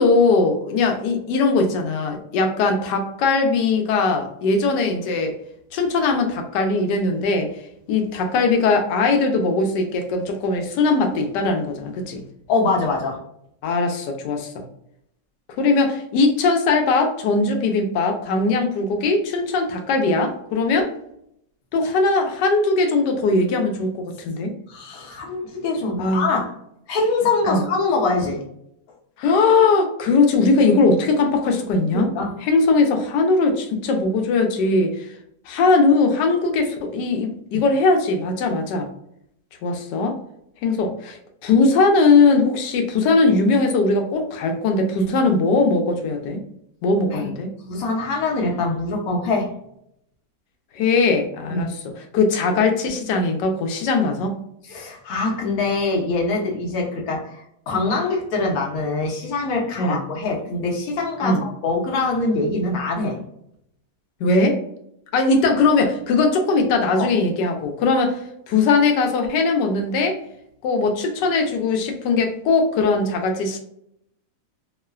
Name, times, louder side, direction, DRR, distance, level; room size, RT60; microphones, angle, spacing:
voice 1, 0.0-5.3 5.7-7.5 7.9-12.2 13.6-14.5 15.6-20.9 21.7-24.5 26.0-26.3 27.5-27.6 29.2-32.1 32.4-35.0 35.5-38.9 39.6-40.1 40.6-46.4 46.8-47.5 50.8-54.3 59.8-60.0 61.2-61.4 64.2-64.6 65.1-68.2 68.5-70.2 70.6-73.6, left 3 dB, 90° left, 4 dB, 1.2 m, -20 dB
voice 2, 12.5-13.2 24.7-26.5 26.9-28.4 31.9-32.3 37.5-37.6 47.1-47.3 47.7-49.5 51.5-51.7 54.7-63.2 67.0-67.1, left 3 dB, 65° left, -1 dB, 1.1 m, -24 dB
3.0 x 2.1 x 2.3 m, 0.74 s
omnidirectional pair, 1.8 m